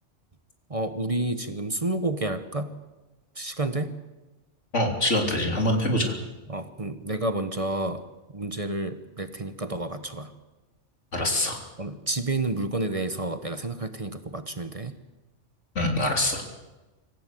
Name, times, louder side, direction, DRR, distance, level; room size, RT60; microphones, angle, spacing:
voice 1, 0.7-2.7 3.4-3.9 6.5-8.0 8.3-10.3 11.8-14.9, right 2 dB, 30° right, 9 dB, 1.2 m, -30 dB
voice 2, 4.7-6.2 11.1-11.6 15.8-16.4, left 1 dB, 85° left, 2 dB, 3.7 m, -24 dB
25.5 x 15.0 x 7.8 m, 1.1 s
omnidirectional pair, 1.2 m